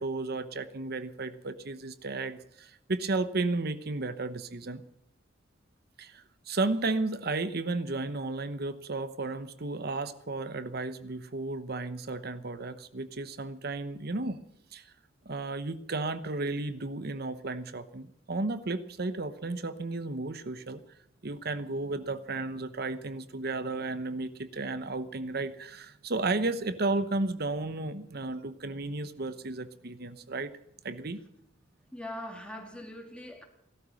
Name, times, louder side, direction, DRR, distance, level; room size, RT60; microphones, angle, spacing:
voice 1, 0.0-4.8 6.0-14.4 14.7-14.8 15.2-20.8 21.2-30.5 30.8-31.2, right 3 dB, 55° right, 1.0 m, -33 dB
voice 2, 31.9-33.4, left 1 dB, 5° left, 2.6 m, -41 dB
17.5 x 12.5 x 6.4 m
head